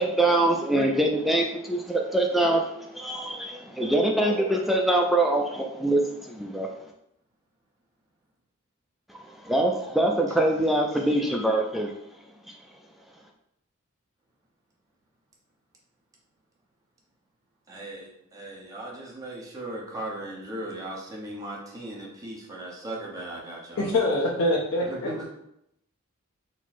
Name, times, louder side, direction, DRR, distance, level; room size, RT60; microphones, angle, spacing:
voice 1, 0.0-6.7 9.4-11.9, right 1 dB, ahead, 1 dB, 0.3 m, -24 dB
voice 2, 17.7-23.9 24.8-25.3, right 1 dB, 15° right, -4 dB, 0.9 m, -37 dB
voice 3, 23.8-25.1, left 1 dB, 75° left, -4 dB, 0.7 m, -24 dB
4.5 x 2.0 x 4.1 m, 0.78 s
head